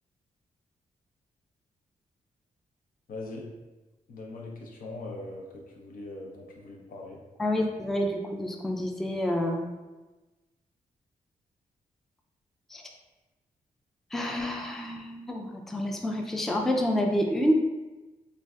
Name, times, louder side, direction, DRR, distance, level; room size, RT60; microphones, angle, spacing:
voice 1, 3.1-3.5 4.1-7.2, left 2 dB, 70° left, -1 dB, 0.6 m, -41 dB
voice 2, 7.4-9.7 12.7-12.9 14.1-17.5, equal, ahead, 1 dB, 0.3 m, -28 dB
3.2 x 2.5 x 2.3 m, 1.2 s
cardioid pair, 70°, 15 cm